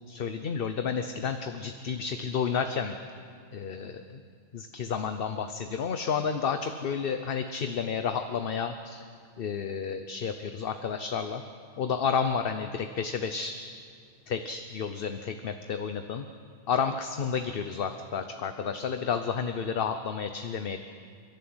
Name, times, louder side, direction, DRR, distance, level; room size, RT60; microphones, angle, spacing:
voice 1, 0.1-3.0 3.5-4.2 4.5-9.0 9.4-11.4 11.8-13.5 14.3-16.3 16.7-20.8, left 6 dB, 55° left, 8 dB, 1.0 m, -31 dB
28.0 x 12.5 x 7.9 m, 2.2 s
omnidirectional pair, 1.2 m